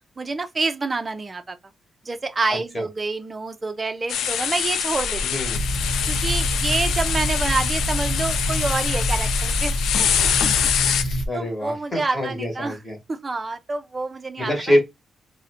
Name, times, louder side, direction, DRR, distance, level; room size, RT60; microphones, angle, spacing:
voice 1, 0.2-1.6 2.0-5.2 6.1-10.5 10.8-11.1 11.3-12.8 13.1-14.5, right 3 dB, 25° right, 0.4 m, -27 dB
sound 1, 4.1-11.0, left 8 dB, 85° left, 0.3 m, -24 dB
voice 2, 5.2-5.6 11.3-13.0 14.4-14.8, left 1 dB, 15° left, 1.0 m, -24 dB
sound 2, 5.5-11.3, equal, 70° left, 0.8 m, -26 dB
2.7 x 2.1 x 4.0 m
wide cardioid pair, 155°, 0 cm